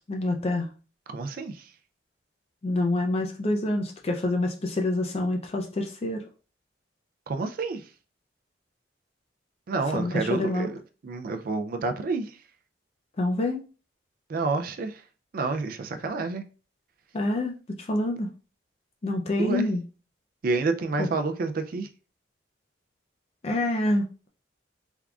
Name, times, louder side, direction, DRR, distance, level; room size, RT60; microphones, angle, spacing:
voice 1, 0.1-0.7 2.6-6.2 9.9-10.7 13.2-13.6 17.1-18.3 19.0-19.8 21.0-21.1 23.4-24.3, left 2 dB, 35° left, 0.4 m, -27 dB
voice 2, 1.1-1.7 7.3-7.9 9.7-12.4 14.3-15.0 15.3-16.4 19.4-19.7 20.4-21.9, right 3 dB, 50° right, 0.4 m, -29 dB
3.6 x 3.4 x 2.3 m
head